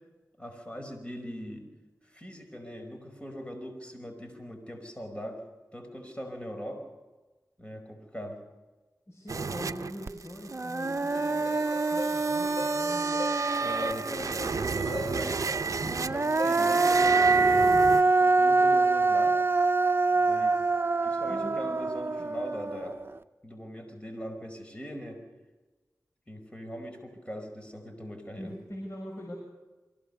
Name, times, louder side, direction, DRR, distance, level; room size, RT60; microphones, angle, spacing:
voice 1, 0.4-1.7 2.0-5.4 5.7-6.9 7.6-8.4 13.6-15.5 16.1-17.7 18.1-19.4 20.2-20.6 21.0-23.0 23.4-25.2 26.3-28.5, equal, 20° left, 3 dB, 5.2 m, -41 dB
voice 2, 9.1-13.2 15.8-16.1 21.3-21.7 28.3-29.4, equal, 50° left, -1 dB, 6.6 m, -42 dB
sound 1, 9.3-18.0, right 5 dB, 65° right, 0.8 m, -32 dB
Human voice, 10.1-10.2 10.5-14.2 15.8-23.1, right 3 dB, 40° right, 0.9 m, -25 dB
sound 2, 11.1-16.8, left 1 dB, 85° left, 4.4 m, -40 dB
24.0 x 16.0 x 6.9 m, 1.2 s
cardioid pair, 45°, 6 cm